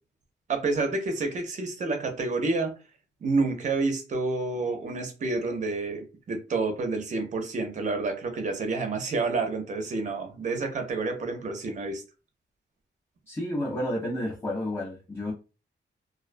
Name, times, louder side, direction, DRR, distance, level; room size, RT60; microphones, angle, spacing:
voice 1, 0.5-2.7 3.2-12.0, right 3 dB, 40° right, 0.5 m, -29 dB
voice 2, 13.3-15.3, left 1 dB, 15° left, 0.4 m, -31 dB
2.3 x 2.2 x 2.4 m
wide cardioid pair, 180°, 20 cm